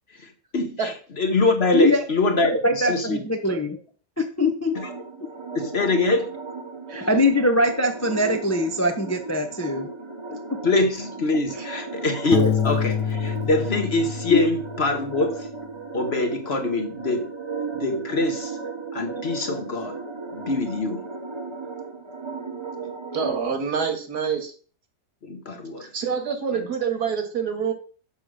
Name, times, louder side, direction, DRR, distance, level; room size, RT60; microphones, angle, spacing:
voice 1, 0.1-3.2 4.7-4.9 5.5-6.3 10.6-15.5 15.9-17.3 17.8-18.6 18.9-20.0 20.3-21.1 25.2-25.9 26.5-26.7, left 2 dB, 45° left, 1.2 m, -24 dB
voice 2, 2.6-3.8 4.2-4.8 6.9-9.9 10.3-10.4 14.3-14.4, left 1 dB, 15° left, 0.5 m, -22 dB
sound 1, 4.7-23.4, right 4 dB, 25° right, 0.6 m, -35 dB
Piano, 12.3-15.1, left 8 dB, 85° left, 1.3 m, -26 dB
voice 3, 23.1-24.5 25.8-27.7, right 6 dB, 75° right, 2.1 m, -26 dB
6.9 x 5.0 x 6.3 m
omnidirectional pair, 1.7 m